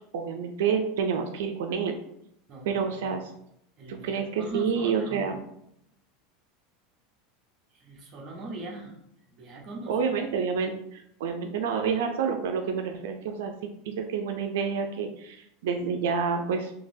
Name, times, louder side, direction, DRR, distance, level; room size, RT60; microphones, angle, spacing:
voice 1, 0.1-2.0 2.6-3.3 3.9-5.4 9.9-13.5 13.9-16.7, right 6 dB, 85° right, 4 dB, 0.4 m, -28 dB
voice 2, 2.5-3.1 3.8-5.2 7.7-9.0 9.3-10.1, right 1 dB, 35° right, 0 dB, 0.8 m, -41 dB
3.8 x 2.7 x 2.6 m, 0.75 s
supercardioid pair, 150°, 0 cm